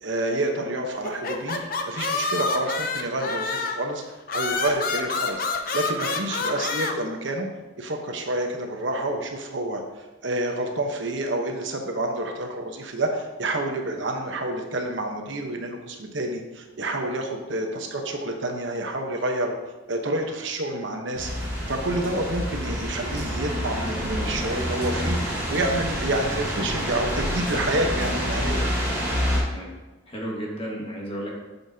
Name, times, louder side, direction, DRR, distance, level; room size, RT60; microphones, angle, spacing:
voice 1, 0.0-1.6 1.9-4.0 4.3-5.4 5.7-7.5 7.8-19.5 19.9-21.3 21.7-28.7, right 1 dB, 70° right, 3 dB, 1.0 m, -28 dB
sound 1, 1.0-3.9 4.3-6.9, left 4 dB, 45° left, 0.7 m, -28 dB
sound 2, 21.1-29.4, equal, 10° right, 2.4 m, -27 dB
voice 2, 30.1-31.3, right 1 dB, 30° left, -2 dB, 1.6 m, -33 dB
9.4 x 7.0 x 2.8 m, 1.2 s
head